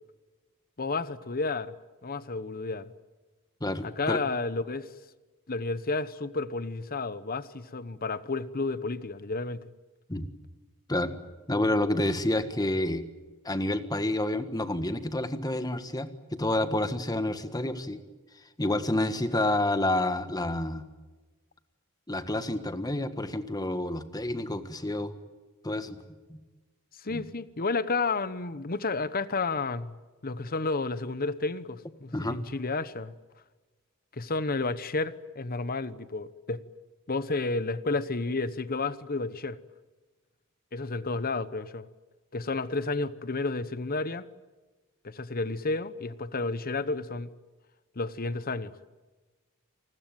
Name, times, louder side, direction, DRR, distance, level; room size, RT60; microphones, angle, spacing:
voice 1, 0.8-1.7 2.0-2.9 3.8-4.9 5.5-9.6 27.0-29.9 30.2-33.1 34.1-36.6 37.1-39.6 40.7-41.9 42.3-44.2 45.0-47.3 48.0-48.7, left 3 dB, 40° left, 1.0 m, -31 dB
voice 2, 3.6-4.2 10.1-10.3 10.9-11.1 11.5-13.0 13.4-18.0 18.6-20.8 22.1-25.1 25.6-26.0 26.3-26.4 27.1-27.2 32.1-32.4, left 1 dB, 15° left, 1.5 m, -29 dB
28.5 x 20.5 x 9.2 m
head